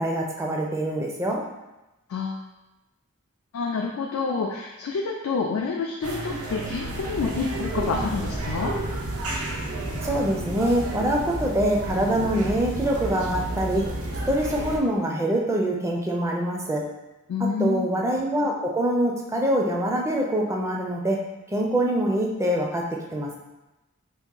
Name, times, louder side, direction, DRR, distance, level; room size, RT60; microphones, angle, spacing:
voice 1, 0.0-1.4 10.0-13.9 14.3-16.8 17.4-21.2 21.5-22.8 23.1-23.4, right 1 dB, 15° right, -1 dB, 0.4 m, -24 dB
voice 2, 2.1-2.4 3.5-8.7 17.3-17.9, left 4 dB, 80° left, -1 dB, 0.4 m, -28 dB
sound 1, 6.0-14.8, right 2 dB, 80° right, 0.5 m, -31 dB
2.9 x 2.5 x 3.7 m, 1.0 s
head